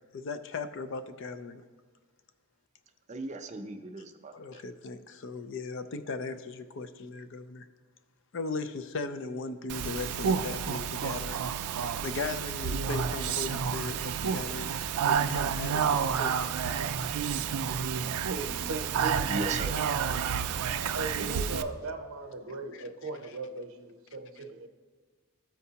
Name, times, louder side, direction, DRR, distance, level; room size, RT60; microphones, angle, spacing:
voice 1, 0.1-1.6 4.3-7.6 8.3-11.4 12.0-14.7 15.0-16.5, left 4 dB, 55° left, 11 dB, 0.4 m, -37 dB
voice 2, 3.1-4.6 19.2-19.8, right 2 dB, 30° right, 5 dB, 0.5 m, -37 dB
Speech, 9.7-21.6, right 7 dB, 85° right, 0.4 m, -30 dB
voice 3, 17.9-19.3 20.7-24.7, right 3 dB, 65° right, 5 dB, 0.7 m, -38 dB
13.0 x 4.5 x 2.8 m, 1.5 s
head